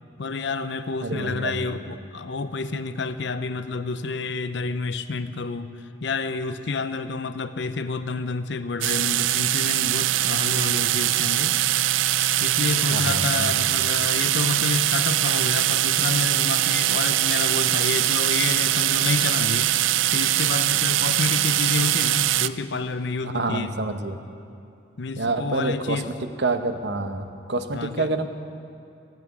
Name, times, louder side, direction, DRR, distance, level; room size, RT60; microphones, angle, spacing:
voice 1, 0.2-11.6 12.4-19.7 20.1-23.8 25.0-26.1 27.7-28.1, left 4 dB, 65° left, 11 dB, 0.6 m, -29 dB
voice 2, 1.0-1.8 12.9-13.5 23.3-24.2 25.2-26.0 26.4-28.3, right 2 dB, 60° right, 8 dB, 0.9 m, -27 dB
sound 1, 8.8-22.5, right 13 dB, 80° right, 0.4 m, -22 dB
14.5 x 9.1 x 9.4 m, 2.6 s
head